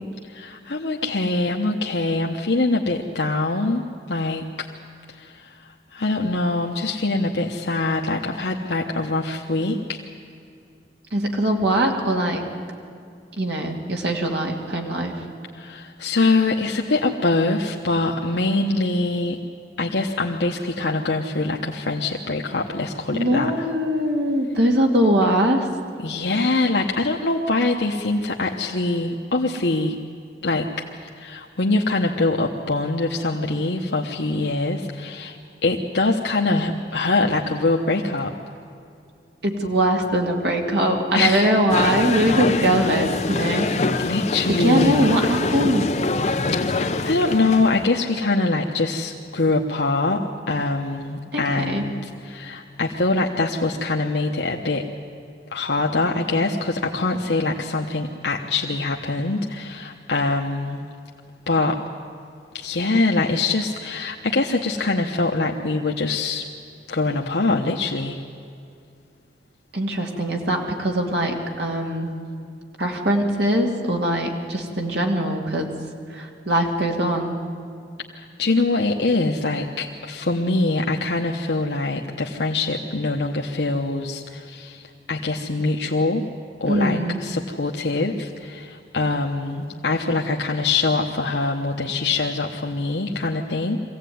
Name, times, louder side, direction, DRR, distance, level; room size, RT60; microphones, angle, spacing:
voice 1, 0.3-4.7 5.1-10.0 15.5-19.4 19.8-23.7 26.0-30.0 30.4-30.8 31.2-38.3 41.1-41.5 44.0-45.1 46.6-54.8 55.5-60.8 61.5-61.8 62.5-66.5 66.9-68.2 78.1-86.3 86.6-93.8, left 3 dB, 75° left, 0 dB, 1.0 m, -23 dB
voice 2, 11.1-12.4 13.4-15.1 23.1-25.7 39.4-43.7 44.5-45.9 51.3-51.9 69.7-72.1 72.8-75.7 76.1-77.4 86.7-87.2, right 1 dB, 70° right, 1 dB, 2.5 m, -22 dB
sound 1, 41.7-47.9, left 3 dB, 40° left, 0.6 m, -24 dB
23.0 x 16.0 x 9.4 m, 2.4 s
head